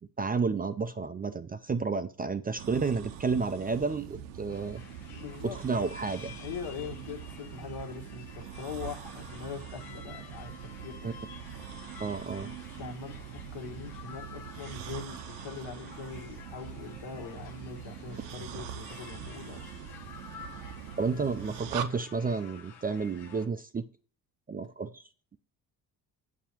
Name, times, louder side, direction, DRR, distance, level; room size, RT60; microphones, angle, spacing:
voice 1, 0.2-4.8 5.4-6.3 12.0-12.5 21.0-23.8 24.5-25.0, right 4 dB, 20° right, 10 dB, 0.4 m, -31 dB
sound 1, 2.6-21.8, right 9 dB, 80° right, 0.7 m, -43 dB
sound 2, 4.5-23.5, left 7 dB, 85° left, 1.1 m, -51 dB
voice 2, 5.1-5.6 6.4-10.5 10.8-11.1 12.4-19.7, left 6 dB, 70° left, 3 dB, 1.6 m, -42 dB
7.1 x 6.3 x 3.0 m, 0.40 s
hypercardioid pair, 55°, 43 cm